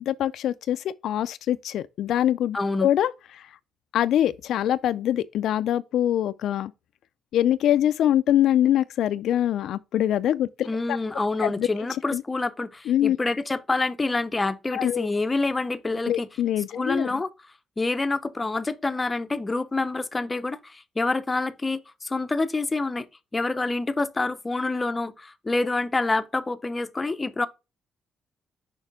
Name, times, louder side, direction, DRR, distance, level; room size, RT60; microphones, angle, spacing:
voice 1, 0.0-3.5 3.9-6.7 7.3-11.0 11.4-11.7 12.1-12.2 12.9-13.2 14.7-15.1 16.1-17.1, left 11 dB, 70° left, 0.3 m, -24 dB
voice 2, 2.5-2.9 10.6-16.3 16.7-17.3 17.8-23.1 23.3-27.5, left 3 dB, 15° left, 0.6 m, -27 dB
6.5 x 5.2 x 3.5 m
cardioid pair, 130°, 0 cm